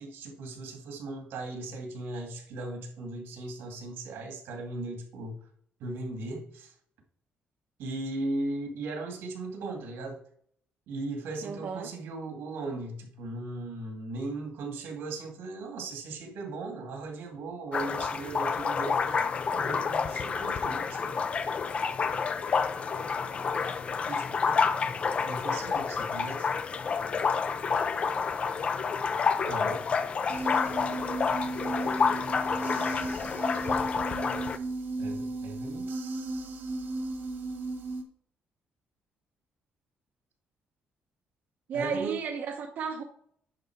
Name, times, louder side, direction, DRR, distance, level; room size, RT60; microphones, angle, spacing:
voice 1, 0.0-5.4 5.8-6.7 7.8-10.2 10.9-21.2 23.9-24.9 25.2-26.5 29.4-29.8 35.0-35.9 41.7-42.2, right 2 dB, 90° right, 2.2 m, -38 dB
voice 2, 11.4-11.9 41.7-43.0, right 5 dB, 55° right, 0.8 m, -33 dB
sound 1, 17.7-34.6, left 5 dB, 30° left, 0.5 m, -29 dB
sound 2, 30.3-38.0, right 2 dB, 70° right, 1.5 m, -35 dB
10.5 x 4.0 x 4.6 m
cardioid pair, 160°, 4 cm